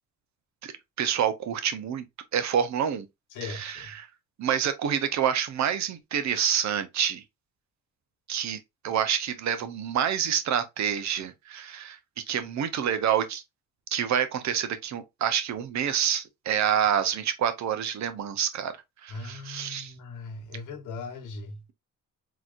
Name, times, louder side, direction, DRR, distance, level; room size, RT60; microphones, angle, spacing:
voice 1, 1.0-2.0 2.3-3.1 3.4-4.1 4.4-7.2 8.3-12.0 12.3-13.4 13.9-18.7 19.0-19.9, right 9 dB, 65° right, 0.8 m, -27 dB
voice 2, 3.3-3.9 19.1-21.6, left 3 dB, 85° left, 1.2 m, -39 dB
4.0 x 3.0 x 2.5 m
cardioid pair, 90°, 30 cm